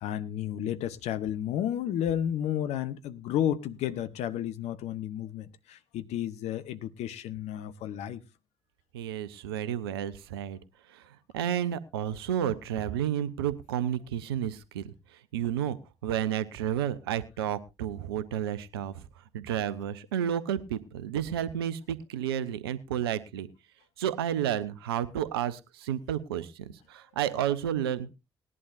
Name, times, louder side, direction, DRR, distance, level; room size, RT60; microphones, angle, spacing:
voice 1, 0.0-8.2, left 10 dB, 60° left, 0.8 m, -32 dB
voice 2, 8.9-10.6 11.3-14.9 15.3-15.8 16.0-18.9 19.3-23.5 24.0-28.1, right 10 dB, 80° right, 0.7 m, -31 dB
19.0 x 11.0 x 2.5 m
figure-of-eight pair, 40°, 13 cm